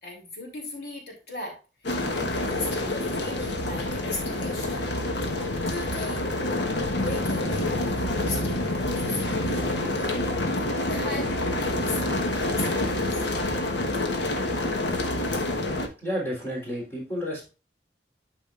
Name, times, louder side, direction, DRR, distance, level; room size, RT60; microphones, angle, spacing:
voice 1, 0.0-4.9 5.6-6.4 7.0-10.2 10.8-12.0 12.5-13.2, left 2 dB, 60° left, 0 dB, 3.4 m, -37 dB
sound 1, 1.8-15.9, left 1 dB, 75° left, 1.3 m, -27 dB
voice 2, 16.0-17.5, equal, 15° left, -4 dB, 3.6 m, -31 dB
12.0 x 5.0 x 2.5 m, 0.30 s
head